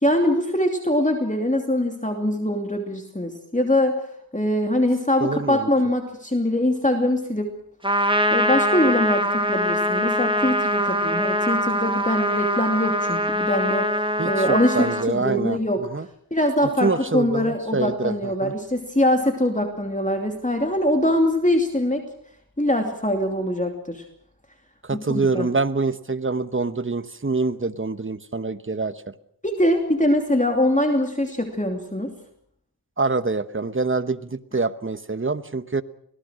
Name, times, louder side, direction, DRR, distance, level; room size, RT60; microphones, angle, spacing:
voice 1, 0.0-4.1 4.3-7.5 8.3-13.9 14.2-15.8 16.3-22.0 22.6-24.0 24.9-25.5 29.4-32.1, left 1 dB, 20° left, 4 dB, 2.8 m, -23 dB
voice 2, 5.2-5.7 14.2-16.1 16.8-18.5 24.8-29.1 33.0-35.8, right 3 dB, 30° right, 13 dB, 1.1 m, -25 dB
Trumpet, 7.8-15.1, equal, 15° right, 1.9 m, -23 dB
25.5 x 18.0 x 6.3 m, 0.68 s
wide cardioid pair, 45°, 38 cm